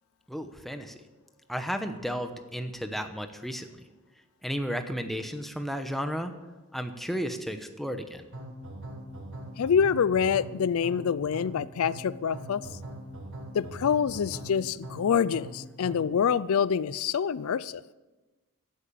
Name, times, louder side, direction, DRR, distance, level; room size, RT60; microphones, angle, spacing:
voice 1, 0.3-1.0 1.5-3.8 4.4-6.3 6.7-8.2, equal, ahead, 7 dB, 0.9 m, -33 dB
sound 1, 8.3-16.2, equal, 60° right, 1.8 m, -41 dB
voice 2, 9.6-12.6 13.5-17.8, left 7 dB, 65° left, 18 dB, 0.4 m, -26 dB
14.5 x 8.7 x 7.0 m, 1.2 s
head